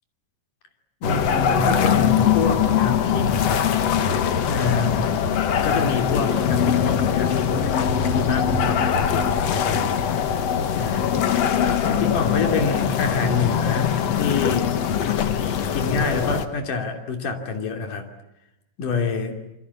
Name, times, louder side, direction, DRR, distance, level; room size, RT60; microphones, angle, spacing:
voice 1, 1.0-3.7 4.5-5.0 5.6-10.2 10.7-11.2 11.9-14.7 15.1-15.3 15.7-18.1 18.8-19.4, left 4 dB, 90° left, 5 dB, 4.5 m, -27 dB
sound 1, 1.0-16.5, left 8 dB, 60° left, 2.3 m, -22 dB
27.5 x 25.5 x 8.5 m, 0.92 s
omnidirectional pair, 3.6 m